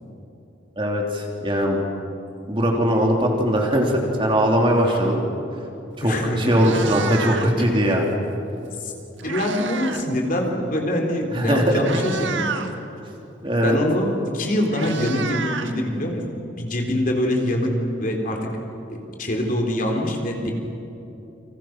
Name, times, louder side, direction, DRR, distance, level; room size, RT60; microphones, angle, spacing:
voice 1, 0.8-1.8 2.5-5.2 6.0-8.1 11.3-11.8 13.4-13.8, equal, 25° right, 0 dB, 3.4 m, -20 dB
Meow, 5.9-6.1 6.4-7.7 8.8-10.1 10.4-10.7 11.4-11.5 11.8-12.7 14.0-14.1 14.4-16.3, right 5 dB, 80° right, 1.7 m, -31 dB
voice 2, 6.0-6.9 7.6-7.7 8.8-8.9 9.2-12.5 13.5-17.7 18.0-18.5 18.9-20.5, left 1 dB, 45° left, 1 dB, 3.8 m, -24 dB
30.0 x 26.0 x 6.1 m, 2.9 s
head